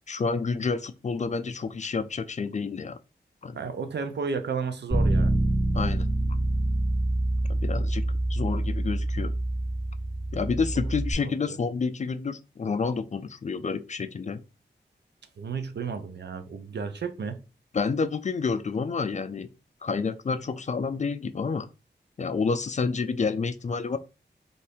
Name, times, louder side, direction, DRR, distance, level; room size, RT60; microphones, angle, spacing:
voice 1, 0.1-3.0 3.4-3.6 5.7-6.1 7.5-8.0 8.3-9.3 10.3-14.4 17.7-19.5 19.8-21.7 22.2-24.0, left 5 dB, 40° left, 0.4 m, -29 dB
voice 2, 3.5-5.3 11.2-11.6 15.4-17.4, right 5 dB, 70° right, 0.5 m, -33 dB
Bass guitar, 4.9-11.1, right 1 dB, 30° right, 1.5 m, -26 dB
2.6 x 2.5 x 3.4 m
cardioid pair, 55°, 19 cm